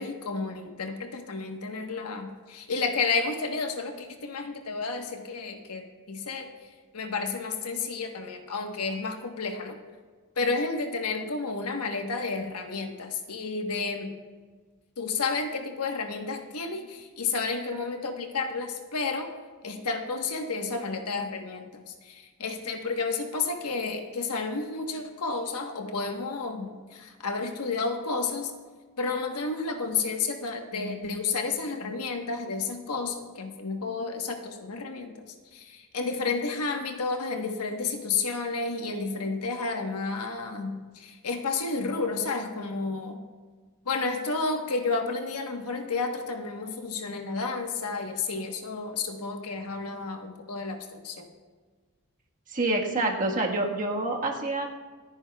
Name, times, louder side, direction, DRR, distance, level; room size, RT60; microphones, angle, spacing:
voice 1, 0.0-6.5 6.9-9.7 10.4-14.1 15.0-19.3 19.6-28.5 29.0-35.1 35.5-43.2 43.9-51.3, left 4 dB, 80° left, 4 dB, 1.2 m, -31 dB
voice 2, 52.5-54.7, right 2 dB, 35° right, 0 dB, 1.4 m, -27 dB
27.0 x 9.8 x 2.3 m, 1.5 s
head